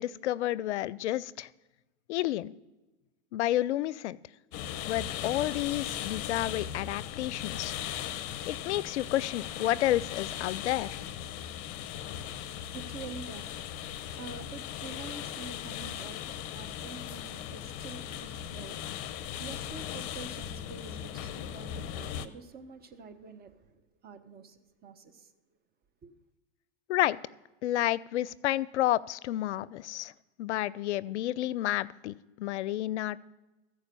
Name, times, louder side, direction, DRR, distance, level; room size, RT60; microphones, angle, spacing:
voice 1, 0.0-1.5 2.1-2.5 3.3-4.2 4.9-7.8 8.5-11.0 26.9-27.2 27.6-30.1 30.4-33.2, left 14 dB, 75° left, 0.5 m, -30 dB
sound 1, 4.5-22.3, left 10 dB, 40° left, 0.7 m, -38 dB
voice 2, 11.9-25.3 26.0-26.1, right 4 dB, 25° right, 1.0 m, -47 dB
14.5 x 4.9 x 6.8 m
hypercardioid pair, 110°, 34 cm